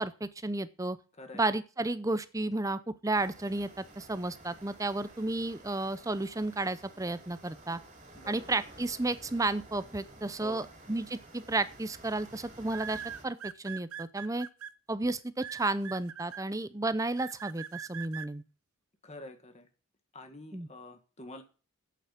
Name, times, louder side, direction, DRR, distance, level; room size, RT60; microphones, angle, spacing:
voice 1, 0.0-1.0 1.3-7.8 8.3-14.5 14.9-18.4 20.5-20.7, right 2 dB, 15° right, 14 dB, 0.6 m, -32 dB
voice 2, 1.1-1.5 8.1-8.6 10.4-10.7 19.0-19.7 20.1-21.4, left 2 dB, 30° left, 6 dB, 1.7 m, -47 dB
sound 1, 3.1-13.2, right 2 dB, 35° right, 3.2 m, -53 dB
sound 2, 11.2-11.5 12.7-14.7 15.4-16.4 17.2-18.3, right 9 dB, 70° right, 0.6 m, -42 dB
8.5 x 7.8 x 8.3 m, 0.36 s
head